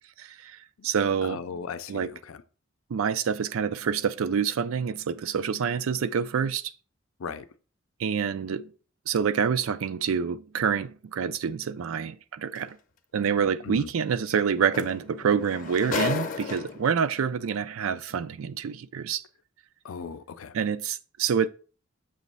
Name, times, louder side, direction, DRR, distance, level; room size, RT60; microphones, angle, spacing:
voice 1, 0.2-0.6 0.8-1.4 1.9-2.1 2.9-6.7 8.0-8.7 9.1-12.8 13.1-19.2 20.5-21.5, right 7 dB, 85° right, 0.4 m, -27 dB
voice 2, 1.2-2.4 7.2-7.5 13.6-13.9 19.8-20.5, left 5 dB, 90° left, 0.5 m, -37 dB
sound 1, 12.6-12.7 14.4-14.5 14.7-17.0 17.9-18.0, left 5 dB, 40° left, 0.7 m, -32 dB
6.9 x 3.1 x 5.4 m
head